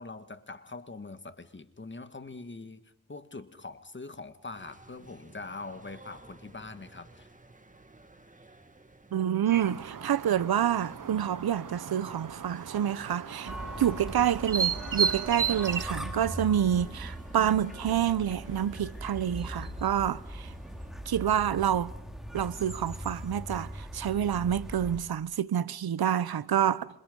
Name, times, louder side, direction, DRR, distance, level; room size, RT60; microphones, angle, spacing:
voice 1, 0.0-7.3, left 3 dB, 30° left, 2.0 m, -43 dB
sound 1, 4.5-20.9, right 1 dB, 20° right, 2.4 m, -49 dB
voice 2, 9.1-20.5 21.1-21.9 22.3-26.9, right 10 dB, 80° right, 0.9 m, -28 dB
sound 2, 9.5-15.8, right 7 dB, 60° right, 1.3 m, -34 dB
sound 3, 13.5-25.0, equal, ahead, 4.2 m, -41 dB
27.5 x 27.0 x 5.4 m
cardioid pair, 65°, 37 cm